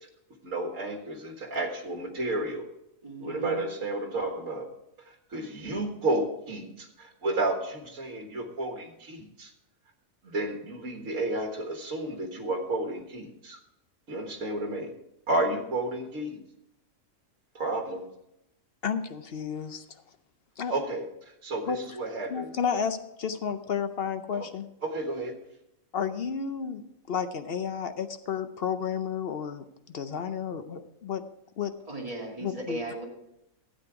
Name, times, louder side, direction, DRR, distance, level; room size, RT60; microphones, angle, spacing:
voice 1, 0.4-2.7 3.2-4.7 5.1-9.5 10.2-13.6 14.1-14.9 15.3-16.4 17.6-18.1 20.7-21.1 21.4-22.5 24.3-24.5 24.8-25.3, right 2 dB, 65° right, 3 dB, 1.9 m, -31 dB
voice 2, 3.0-3.6 31.9-33.0, right 1 dB, 25° right, -2 dB, 2.4 m, -36 dB
voice 3, 18.8-19.8 20.6-20.7 21.7-21.8 22.3-24.7 25.9-29.6 29.9-31.2 31.6-31.7 32.4-32.8, left 7 dB, 55° left, 9 dB, 0.7 m, -31 dB
12.5 x 8.8 x 4.7 m, 0.84 s
omnidirectional pair, 1.5 m